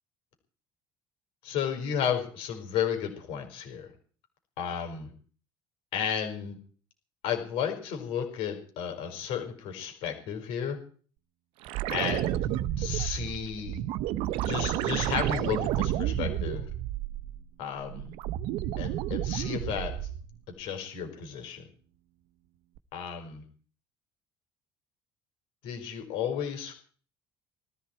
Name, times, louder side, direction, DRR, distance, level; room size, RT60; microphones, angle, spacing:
voice 1, 1.4-3.9 4.6-5.1 5.9-6.6 7.2-10.8 11.9-12.5 12.8-13.8 14.4-16.7 17.6-18.1 18.8-19.9 20.6-21.6 22.9-23.4 25.6-26.7, left 8 dB, 75° left, 4 dB, 5.3 m, -33 dB
sound 1, 11.6-17.4 17.8-20.3 22.8-22.9, right 13 dB, 75° right, 0.9 m, -31 dB
20.5 x 14.0 x 4.6 m, 0.43 s
cardioid pair, 150°, 9 cm